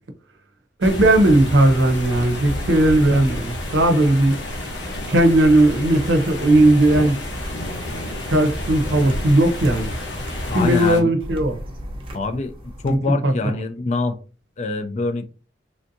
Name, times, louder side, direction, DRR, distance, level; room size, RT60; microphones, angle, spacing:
sound 1, 0.8-11.0, left 1 dB, 75° left, 0.9 m, -30 dB
voice 1, 0.8-4.3 5.1-7.2 8.3-9.9 10.5-11.5 12.9-13.0 13.2-13.3, right 1 dB, 75° right, 0.6 m, -17 dB
sound 2, 6.0-6.1 7.3-7.5 8.7-10.5 11.2-12.9, equal, 30° right, 0.7 m, -35 dB
voice 2, 10.5-11.1 12.1-14.2 14.6-15.3, left 3 dB, 35° left, 0.3 m, -25 dB
3.4 x 2.6 x 2.6 m
head